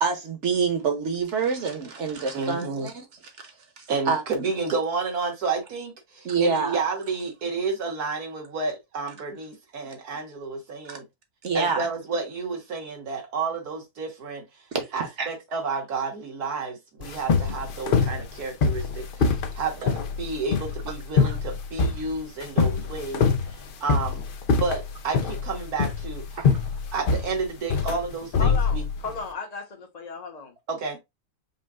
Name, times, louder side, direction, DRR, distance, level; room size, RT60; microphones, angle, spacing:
voice 1, 0.0-3.0 3.8-4.5 6.2-6.8 10.9-11.0 11.4-11.9 14.7-14.9 15.2-15.3 21.2-21.3 26.3-26.6, right 5 dB, 50° right, 1.4 m, -26 dB
voice 2, 2.3-2.9 3.9-11.0 11.5-14.4 14.9-24.2 24.6-26.2 26.9-28.9 30.7-31.0, right 4 dB, 70° right, 2.0 m, -31 dB
sound 1, 17.0-29.2, left 5 dB, 60° left, 0.5 m, -24 dB
voice 3, 28.4-30.5, left 4 dB, 30° left, 1.1 m, -35 dB
5.5 x 2.4 x 3.6 m
omnidirectional pair, 1.6 m